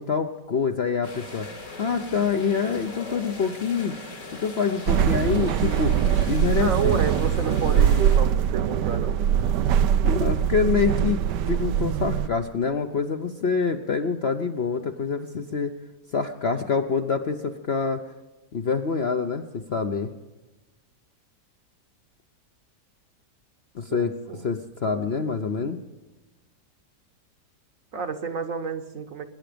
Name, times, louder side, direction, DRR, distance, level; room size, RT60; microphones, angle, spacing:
voice 1, 0.0-1.5 1.8-3.9 4.4-7.0 10.0-15.7 16.1-18.0 18.5-20.1 23.7-24.1 24.4-25.8, left 5 dB, 50° left, 5 dB, 0.8 m, -26 dB
sound 1, 1.0-8.2, left 2 dB, 75° left, 3.8 m, -40 dB
sound 2, 4.9-12.3, right 9 dB, 80° right, 1.3 m, -22 dB
voice 2, 6.6-9.2 23.9-24.5 27.9-29.2, right 6 dB, 55° right, 7 dB, 1.3 m, -30 dB
23.0 x 10.5 x 5.1 m, 1.1 s
omnidirectional pair, 1.8 m